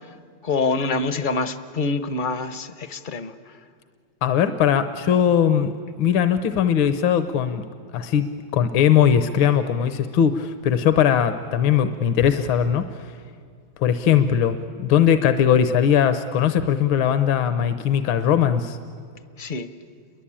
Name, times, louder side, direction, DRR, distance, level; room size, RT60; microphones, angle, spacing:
voice 1, 0.4-3.3 19.4-19.7, left 3 dB, 55° left, 12 dB, 0.5 m, -25 dB
voice 2, 4.2-5.7 6.0-7.6 7.9-12.9 13.8-18.8, left 8 dB, 80° left, 10 dB, 1.7 m, -20 dB
29.5 x 23.0 x 8.7 m, 2.2 s
omnidirectional pair, 2.1 m